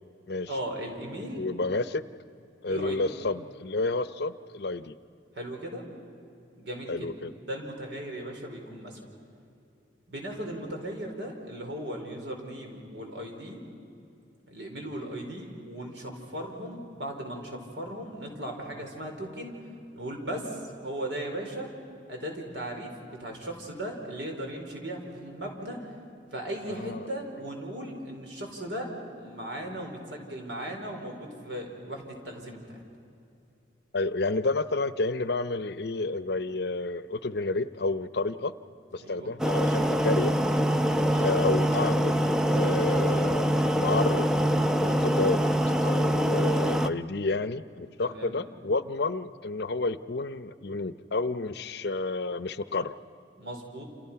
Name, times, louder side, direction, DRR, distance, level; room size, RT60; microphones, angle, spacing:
voice 1, 0.5-1.4 2.7-3.1 5.3-5.8 6.6-7.1 7.4-9.0 10.1-13.6 14.5-19.6 19.9-21.7 22.1-25.9 26.3-32.8 39.0-39.3 41.1-41.4 48.0-48.4 53.4-53.8, right 1 dB, 70° right, 2 dB, 4.7 m, -37 dB
voice 2, 1.4-2.0 2.6-4.9 6.9-7.3 26.7-27.0 33.9-38.5 38.9-40.3 41.2-44.3 44.8-45.4 45.8-52.9, left 3 dB, 60° left, 13 dB, 0.7 m, -30 dB
sound 1, 39.4-46.9, equal, 5° right, 0.6 m, -24 dB
29.0 x 28.0 x 5.8 m, 2.7 s
head